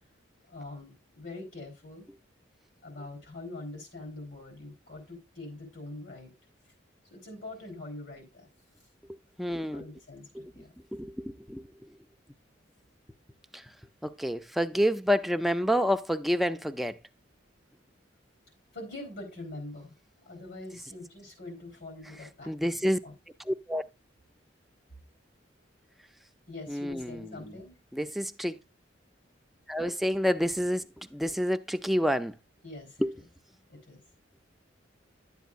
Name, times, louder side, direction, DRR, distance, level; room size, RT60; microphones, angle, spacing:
voice 1, 0.5-2.1 2.8-6.3 7.1-8.5 9.6-10.7 18.7-19.9 20.3-23.1 26.5-27.8 32.6-33.2 33.7-34.0, left 2 dB, 65° left, 3.8 m, -44 dB
voice 2, 9.4-9.8 10.4-10.5 10.9-11.6 13.5-13.6 14.0-17.0 22.5-23.0 23.5-23.8 26.7-27.2 27.9-28.6 29.7-30.9 31.1-32.3 33.0-33.1, equal, ahead, 0.4 m, -28 dB
11.0 x 8.1 x 2.5 m
head